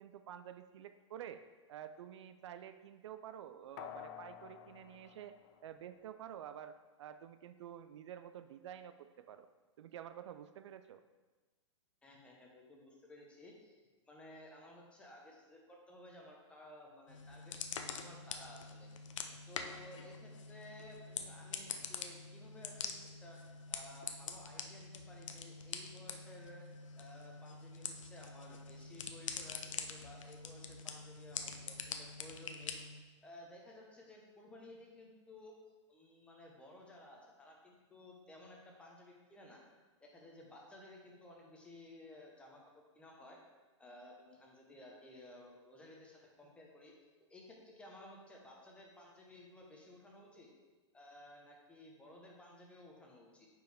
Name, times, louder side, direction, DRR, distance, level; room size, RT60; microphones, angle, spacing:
voice 1, 0.0-1.4 1.7-5.3 5.6-9.5 9.8-11.0, right 10 dB, 65° right, 10 dB, 0.4 m, -50 dB
sound 1, 3.8-6.3 6.7-6.8, left 11 dB, 35° left, 0.3 m, -52 dB
voice 2, 12.0-13.8 14.1-18.9 19.5-23.4 23.7-26.7 27.0-32.7 33.2-35.5 35.9-39.6 40.0-43.4 43.8-46.9 47.3-50.5 50.9-53.5, left 1 dB, 5° left, -2 dB, 1.0 m, -56 dB
sound 2, 17.1-33.0, left 6 dB, 85° left, 0.7 m, -45 dB
9.0 x 4.6 x 3.5 m, 1.3 s
hypercardioid pair, 155°, 16 cm